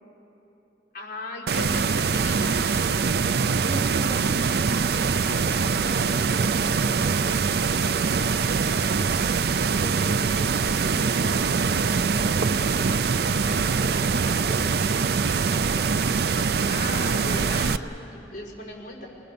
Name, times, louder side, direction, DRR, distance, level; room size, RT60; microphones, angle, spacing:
voice 1, 0.9-2.6 16.3-19.1, left 2 dB, 50° left, -4 dB, 5.1 m, -37 dB
sound 1, 1.5-17.8, right 5 dB, 60° right, 0.4 m, -23 dB
voice 2, 3.4-9.1 9.8-11.4 11.7-13.3 13.7-15.1, right 1 dB, 10° left, -8 dB, 4.5 m, -40 dB
sound 2, 11.1-16.8, right 4 dB, 90° right, 0.7 m, -41 dB
27.5 x 20.5 x 6.8 m, 3.0 s
head